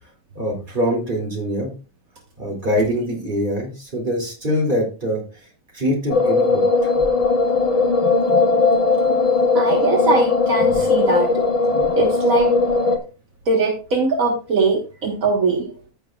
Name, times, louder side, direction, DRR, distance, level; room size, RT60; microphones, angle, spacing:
voice 1, 0.3-1.7 2.4-5.2 5.7-6.9, equal, 35° right, 0 dB, 2.9 m, -23 dB
sound 1, 6.1-13.0, left 3 dB, 30° left, 0.8 m, -18 dB
voice 2, 9.1-11.4 12.0-12.5 13.5-15.7, right 3 dB, 75° right, 1 dB, 1.8 m, -21 dB
14.0 x 6.3 x 2.3 m, 0.32 s
omnidirectional pair, 1.5 m